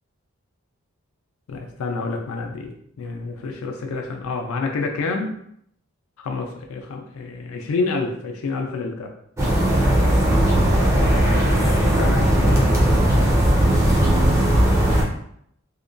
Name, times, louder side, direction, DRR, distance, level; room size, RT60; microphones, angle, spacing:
voice 1, 1.5-5.3 6.2-9.1 11.5-12.7, left 3 dB, 80° left, 2 dB, 0.4 m, -28 dB
sound 1, 9.4-15.0, right 1 dB, 15° right, 0.3 m, -17 dB
2.8 x 2.2 x 2.5 m, 0.70 s
head